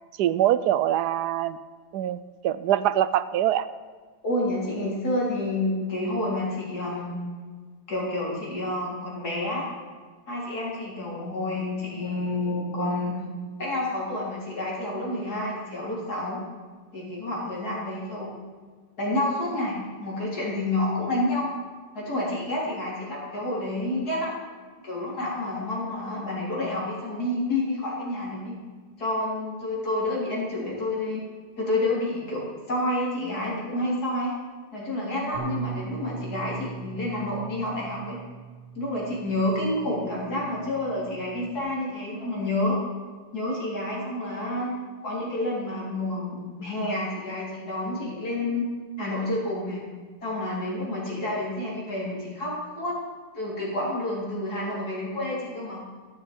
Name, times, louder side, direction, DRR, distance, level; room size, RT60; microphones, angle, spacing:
voice 1, 0.2-1.6 1.9-3.7, right 12 dB, 80° right, 15 dB, 1.2 m, -24 dB
voice 2, 4.2-7.1 7.9-9.7 10.3-13.2 13.6-16.4 16.9-18.3 19.0-21.5 21.9-24.3 24.8-28.5 29.0-31.2 31.6-34.3 34.7-38.2 38.8-42.8 43.3-44.7 45.0-48.6 49.0-49.8 50.2-53.0 53.3-55.8, left 1 dB, 70° left, -4 dB, 4.4 m, -29 dB
Bass guitar, 35.3-41.6, right 7 dB, 50° right, 2.9 m, -40 dB
14.0 x 11.5 x 5.3 m, 1.5 s
omnidirectional pair, 1.7 m